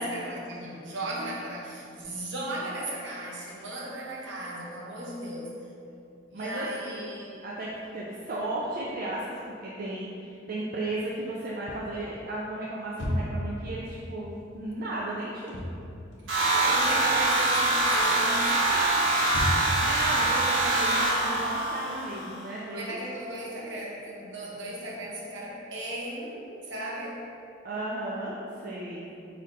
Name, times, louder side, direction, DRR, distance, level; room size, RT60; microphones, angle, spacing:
voice 1, 0.0-5.5 6.3-7.4 16.4-19.1 22.7-27.2, right 1 dB, 65° right, -4 dB, 0.8 m, -36 dB
voice 2, 6.3-7.1 7.4-15.6 19.5-23.0 27.6-29.4, right 1 dB, 50° right, -5 dB, 0.4 m, -35 dB
sound 1, 12.9-13.6 15.3-15.8 16.1-17.1 17.4-17.8 18.4-19.9, left 1 dB, 70° left, 0.7 m, -32 dB
sound 2, 16.3-22.4, right 2 dB, 85° right, 1.2 m, -24 dB
4.1 x 2.7 x 3.7 m, 2.7 s
head